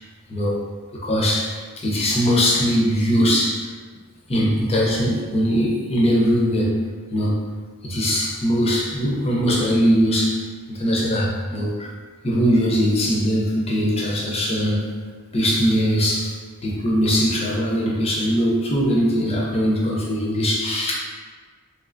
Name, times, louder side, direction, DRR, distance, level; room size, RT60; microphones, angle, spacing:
voice 1, 0.3-0.6 1.0-3.7 4.3-6.8 7.1-7.4 7.8-10.4 10.7-11.9 12.2-14.9 15.3-16.3 16.6-20.9, equal, 30° left, -3 dB, 0.6 m, -21 dB
3.1 x 3.1 x 2.6 m, 1.5 s
head